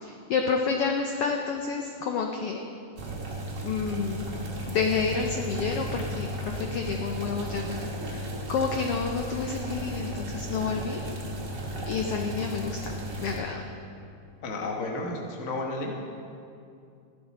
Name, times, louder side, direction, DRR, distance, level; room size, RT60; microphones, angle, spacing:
voice 1, 0.0-2.6 3.6-4.3 4.7-11.0 11.8-13.6, left 5 dB, 80° left, 3 dB, 1.3 m, -29 dB
sound 1, 3.0-13.4, equal, 45° right, 1.8 m, -35 dB
voice 2, 14.4-15.9, left 2 dB, 50° left, 1 dB, 0.8 m, -32 dB
14.5 x 11.5 x 4.2 m, 2.5 s
omnidirectional pair, 3.5 m